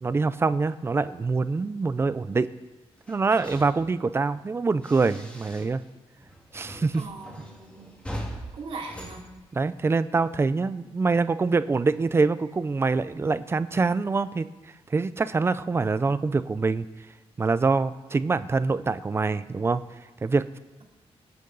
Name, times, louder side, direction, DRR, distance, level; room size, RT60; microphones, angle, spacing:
voice 1, 0.0-2.5 3.1-5.8 6.5-7.0 9.6-14.5 14.9-16.9 17.4-19.8 20.2-20.4, right 4 dB, 25° right, 14 dB, 0.5 m, -25 dB
sound 1, 3.0-5.9 6.2-10.1, equal, 10° left, 2.0 m, -42 dB
voice 2, 6.9-7.9 8.5-9.2, right 3 dB, 60° right, -1 dB, 3.1 m, -40 dB
24.5 x 9.5 x 4.0 m, 1.1 s
wide cardioid pair, 175°, 11 cm